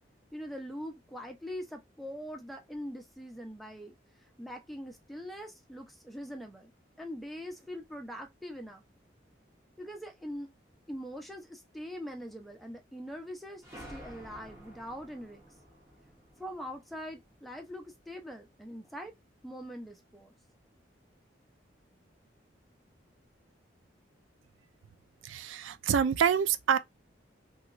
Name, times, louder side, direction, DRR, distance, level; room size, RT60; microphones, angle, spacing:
voice 1, 0.3-4.0 4.4-6.7 7.0-8.8 9.8-10.5 10.9-15.4 16.4-19.1 19.4-20.3, equal, ahead, 0.6 m, -42 dB
sound 1, 13.6-18.1, equal, 15° right, 0.9 m, -52 dB
voice 2, 25.2-26.8, right 7 dB, 90° right, 0.4 m, -27 dB
3.0 x 2.9 x 2.4 m
head